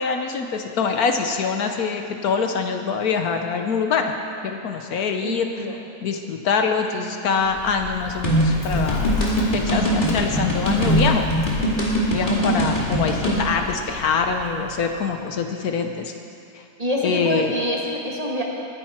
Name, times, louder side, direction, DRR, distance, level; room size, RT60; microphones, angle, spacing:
voice 1, 0.0-4.1 4.4-5.7 6.0-9.2 9.5-11.3 12.1-16.1 16.5-16.6 17.0-17.5, left 5 dB, 70° left, 5 dB, 1.3 m, -24 dB
voice 2, 5.2-5.8 16.8-18.4, equal, 25° right, -3 dB, 1.7 m, -26 dB
Bird, 7.3-15.1, left 5 dB, 90° left, 2.2 m, -32 dB
sound 1, 8.2-13.4, right 1 dB, 30° left, 2.4 m, -21 dB
20.5 x 10.5 x 4.4 m, 2.6 s
omnidirectional pair, 1.7 m